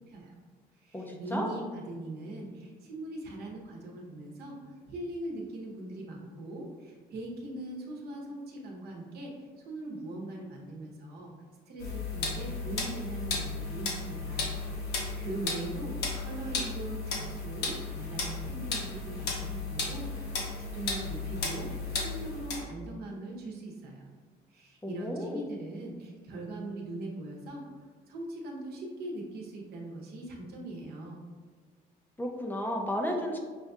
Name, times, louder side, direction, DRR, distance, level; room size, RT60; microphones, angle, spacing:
voice 1, 0.1-0.4 0.8-11.3 11.7-20.3 20.7-24.1 24.5-31.2, right 2 dB, 70° right, -1 dB, 0.9 m, -41 dB
voice 2, 0.9-1.5 24.8-25.4 32.2-33.4, left 1 dB, 10° left, 1 dB, 0.5 m, -33 dB
sound 1, 11.8-22.6, left 3 dB, 75° left, 1.0 m, -34 dB
5.7 x 2.7 x 2.3 m, 1.5 s
cardioid pair, 110°, 17 cm